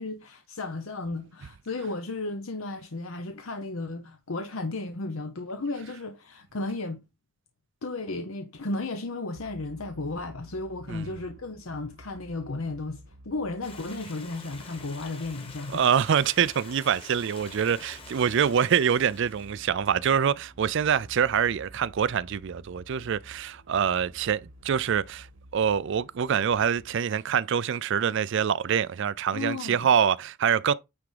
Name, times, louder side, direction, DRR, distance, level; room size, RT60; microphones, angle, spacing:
voice 1, 0.0-7.0 7.8-15.8 29.3-29.9, left 2 dB, 70° left, 0.9 m, -34 dB
sound 1, 9.3-27.0, right 1 dB, 85° right, 1.5 m, -52 dB
Stream, 13.6-19.7, left 4 dB, 25° left, 1.7 m, -47 dB
voice 2, 15.7-25.3 25.5-30.7, right 7 dB, 60° right, 0.4 m, -25 dB
9.7 x 3.6 x 5.0 m
head